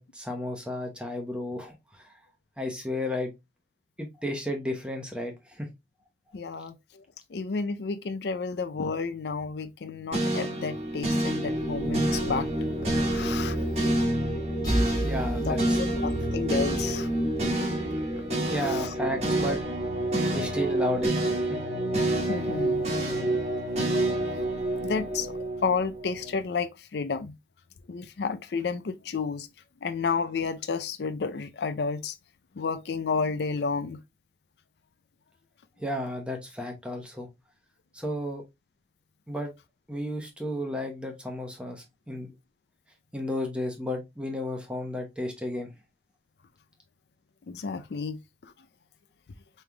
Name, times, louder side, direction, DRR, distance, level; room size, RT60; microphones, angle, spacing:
voice 1, 0.0-2.1 2.6-3.3 4.0-5.7 15.0-15.8 18.5-19.6 20.3-21.6 35.8-37.3 37.9-38.4 39.3-39.5 39.9-42.3 43.1-45.7, left 1 dB, 5° right, 0.9 m, -33 dB
voice 2, 6.3-7.0 7.3-12.7 13.1-13.6 15.4-17.1 18.6-18.9 20.2-20.4 22.3-22.9 24.8-25.3 25.6-27.3 27.9-29.5 29.8-32.2 32.6-34.0 47.5-48.5, left 5 dB, 75° left, 0.4 m, -31 dB
sound 1, 10.1-26.4, right 1 dB, 35° right, 1.2 m, -28 dB
sound 2, 14.6-18.3, right 1 dB, 20° left, 1.2 m, -33 dB
5.4 x 3.2 x 2.2 m
head